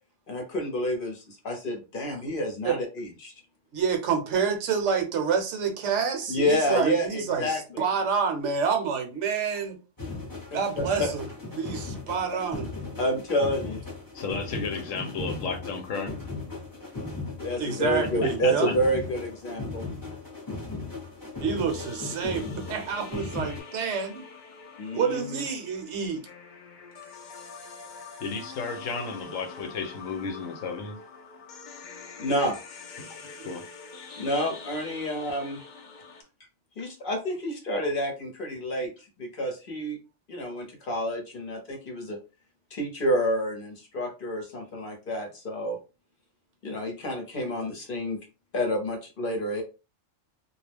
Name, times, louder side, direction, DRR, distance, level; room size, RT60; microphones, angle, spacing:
voice 1, 0.3-3.3 6.3-7.8 10.5-10.6 11.0-11.1 13.0-13.8 17.4-19.8 24.8-25.4 32.2-32.6 34.2-35.6 36.8-40.0 40.3-42.2 42.7-45.8 46.6-48.2 48.5-49.6, equal, 50° left, 0.8 m, -29 dB
voice 2, 3.7-9.8 10.5-11.3 11.6-12.7 17.6-18.7 21.4-24.2 24.9-26.2 33.4-33.5, right 6 dB, 70° right, 0.9 m, -28 dB
sound 1, 10.0-23.6, left 3 dB, 20° left, 0.7 m, -37 dB
voice 3, 14.1-16.2 18.0-18.7 28.2-31.0 33.0-33.6, left 4 dB, 85° left, 1.0 m, -33 dB
sound 2, 21.7-36.2, left 4 dB, 70° left, 0.4 m, -45 dB
2.3 x 2.0 x 3.3 m
omnidirectional pair, 1.3 m